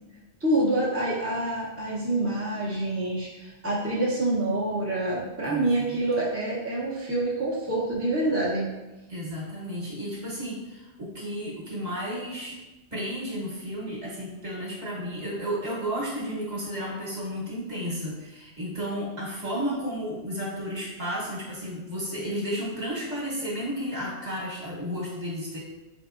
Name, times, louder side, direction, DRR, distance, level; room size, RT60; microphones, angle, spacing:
voice 1, 0.4-8.7, right 2 dB, 15° right, -6 dB, 0.6 m, -27 dB
voice 2, 5.4-6.0 9.1-12.6 12.9-25.6, equal, 40° right, -5 dB, 1.3 m, -33 dB
4.4 x 3.6 x 2.5 m, 1.1 s
omnidirectional pair, 1.1 m